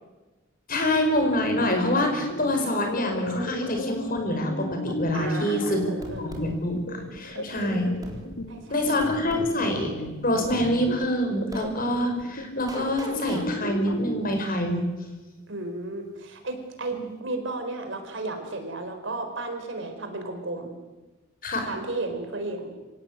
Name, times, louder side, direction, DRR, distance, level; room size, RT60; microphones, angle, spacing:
voice 1, 0.7-5.8 6.2-7.9 8.7-9.9 10.2-14.9 16.9-17.0 21.4-21.7, left 1 dB, 45° left, 4 dB, 5.2 m, -26 dB
sound 1, 1.1-14.2, left 1 dB, 75° left, 2.9 m, -34 dB
voice 2, 5.1-6.2 7.3-7.6 8.5-9.0 15.5-20.7 21.6-22.7, right 2 dB, 65° right, 6 dB, 4.5 m, -34 dB
sound 2, 6.0-6.5 8.0-8.2 9.0-9.5 10.5-10.7 11.5-11.7 12.7-13.5, right 1 dB, 20° right, 4.0 m, -37 dB
26.0 x 17.5 x 9.0 m, 1.2 s
head